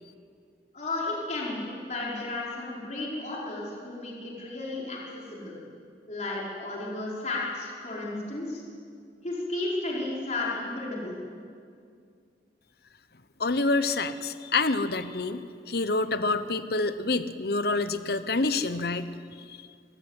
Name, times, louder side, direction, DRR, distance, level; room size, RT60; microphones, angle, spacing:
voice 1, 0.7-5.6 6.1-8.6 9.2-11.1, left 2 dB, 40° left, -5 dB, 4.8 m, -33 dB
voice 2, 13.4-19.1 19.4-19.6, left 3 dB, 60° left, 12 dB, 1.0 m, -27 dB
24.0 x 19.5 x 8.2 m, 2.3 s
head